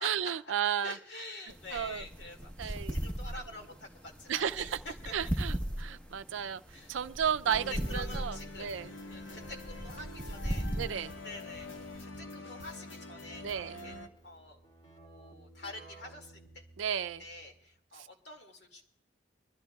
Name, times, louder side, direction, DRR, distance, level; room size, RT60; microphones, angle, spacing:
voice 1, 0.0-1.0 1.7-2.1 2.6-3.0 4.3-4.8 5.1-8.9 10.7-11.1 13.4-13.8 16.8-17.2 17.9-18.1, right 8 dB, 85° right, 0.4 m, -33 dB
voice 2, 0.8-5.1 6.7-6.9 7.9-8.7 9.1-10.7 11.2-13.9 14.2-14.6 15.0-16.6 17.2-18.8, left 2 dB, 65° left, 2.1 m, -47 dB
sound 1, 1.5-12.0, right 1 dB, 10° left, 1.2 m, -38 dB
sound 2, 7.4-14.1, left 2 dB, 85° left, 1.2 m, -46 dB
Keyboard (musical), 9.3-17.7, right 2 dB, 30° left, 2.8 m, -57 dB
24.5 x 13.5 x 2.3 m
head